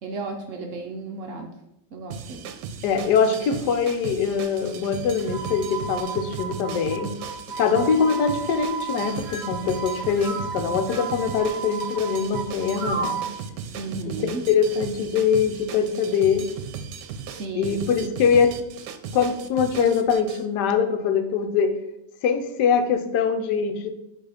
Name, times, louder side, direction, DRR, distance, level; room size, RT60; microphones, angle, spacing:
voice 1, 0.0-1.5 1.9-2.5 13.8-14.5 17.3-17.9, right 3 dB, 65° right, 3 dB, 0.8 m, -34 dB
sound 1, 2.1-20.4, right 7 dB, 80° right, 1.2 m, -37 dB
voice 2, 2.8-7.1 7.6-13.2 14.1-16.5 17.6-18.6 19.1-21.7 22.2-23.9, left 6 dB, 80° left, 7 dB, 1.2 m, -23 dB
sound 2, 5.2-13.4, right 5 dB, 45° right, 1.1 m, -33 dB
7.1 x 3.1 x 4.8 m, 0.87 s
omnidirectional pair, 1.8 m